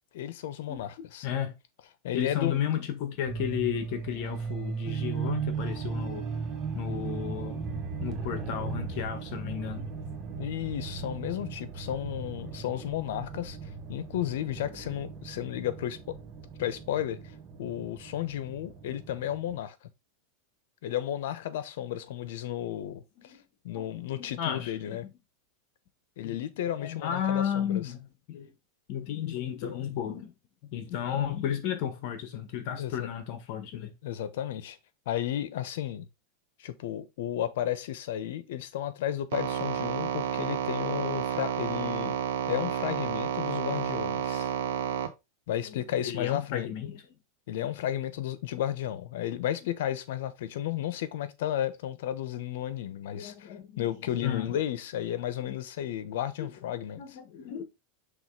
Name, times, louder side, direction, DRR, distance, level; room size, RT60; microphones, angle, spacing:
voice 1, 0.1-1.3 2.0-2.6 10.4-13.6 13.9-16.2 16.6-19.8 20.8-23.4 23.6-25.1 26.2-27.9 32.8-33.1 34.0-34.8 35.1-36.1 36.6-42.2 42.5-44.5 45.5-46.7 47.5-57.2, left 11 dB, 75° left, 1.0 m, -33 dB
voice 2, 1.2-1.6 2.1-6.2 6.7-7.7 8.0-9.9 23.3-23.4 23.8-25.0 26.2-26.4 26.8-28.5 28.9-30.3 30.6-33.9 45.7-47.0 53.2-53.9 54.2-54.6 56.4-56.5 57.0-57.6, left 9 dB, 55° left, 1.5 m, -33 dB
sound 1, 3.3-19.6, right 5 dB, 30° right, 1.3 m, -37 dB
sound 2, 39.3-45.1, right 9 dB, 80° right, 1.1 m, -31 dB
6.3 x 3.4 x 4.8 m
supercardioid pair, 145°, 0 cm